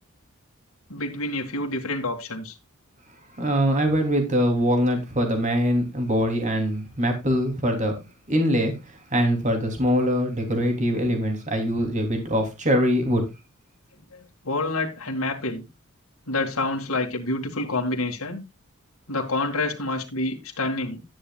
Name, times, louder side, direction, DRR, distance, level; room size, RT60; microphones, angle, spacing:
voice 1, 0.9-2.6 14.1-15.7 16.3-18.4 19.1-21.0, left 2 dB, 70° left, 2.2 m, -28 dB
voice 2, 3.4-7.9 8.3-8.7 9.1-13.2, equal, 35° right, 3.1 m, -23 dB
12.5 x 10.0 x 2.4 m
head